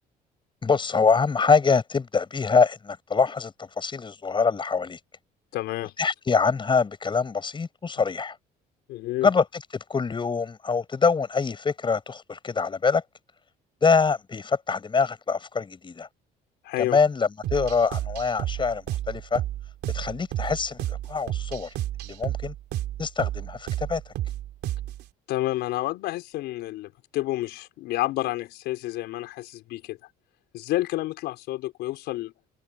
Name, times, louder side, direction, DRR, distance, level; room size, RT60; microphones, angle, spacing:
voice 1, 0.6-5.0 6.0-8.4 9.2-13.0 13.8-16.1 16.8-19.4 19.9-21.7 22.0-22.5 23.0-24.1, left 5 dB, 30° left, 7.3 m, -24 dB
voice 2, 5.5-5.9 8.9-9.3 16.6-17.0 25.3-30.0 30.5-32.3, left 17 dB, 85° left, 5.4 m, -29 dB
sound 1, 17.4-25.0, right 13 dB, 75° right, 3.1 m, -31 dB
cardioid pair, 110°, 17 cm